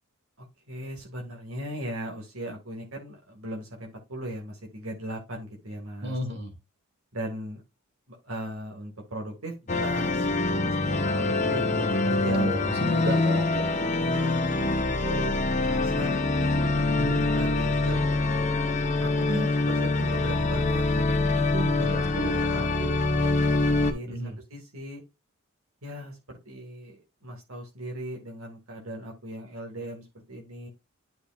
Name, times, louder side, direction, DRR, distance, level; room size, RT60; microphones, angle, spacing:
voice 1, 0.4-6.2 7.1-7.6 8.1-13.0 13.8-18.0 19.0-24.2 24.5-25.0 25.8-30.7, right 1 dB, 75° right, 0 dB, 2.0 m, -38 dB
voice 2, 6.0-6.5 12.3-13.7 17.0-17.2 21.8-22.4 24.1-24.4, equal, 50° right, 2 dB, 2.8 m, -33 dB
sound 1, 9.7-23.9, left 2 dB, 35° left, 1.0 m, -25 dB
11.0 x 5.0 x 2.4 m, 0.25 s
head